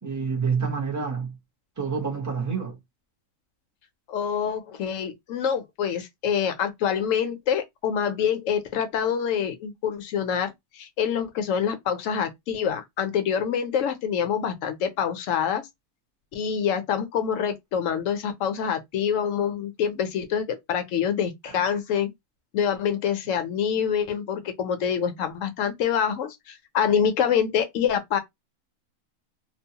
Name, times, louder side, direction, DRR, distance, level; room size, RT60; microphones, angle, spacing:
voice 1, 0.0-1.3 1.8-2.8 21.5-21.6, right 5 dB, 15° right, 0.7 m, -28 dB
voice 2, 4.1-15.7 16.3-22.1 22.5-28.2, left 8 dB, 70° left, 1.0 m, -26 dB
2.9 x 2.0 x 2.8 m
omnidirectional pair, 1.5 m